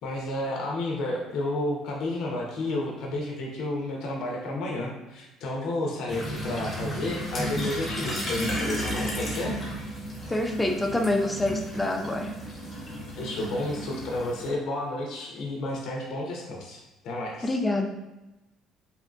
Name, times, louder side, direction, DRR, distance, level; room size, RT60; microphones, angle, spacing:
voice 1, 0.0-9.5 13.2-17.6, left 1 dB, 70° left, -1 dB, 0.5 m, -31 dB
sound 1, 6.1-14.5, equal, 30° left, 0.7 m, -33 dB
voice 2, 10.3-12.3 17.4-17.9, left 1 dB, 10° left, 3 dB, 0.3 m, -26 dB
2.7 x 2.2 x 2.5 m, 1.0 s
cardioid pair, 100°, 0 cm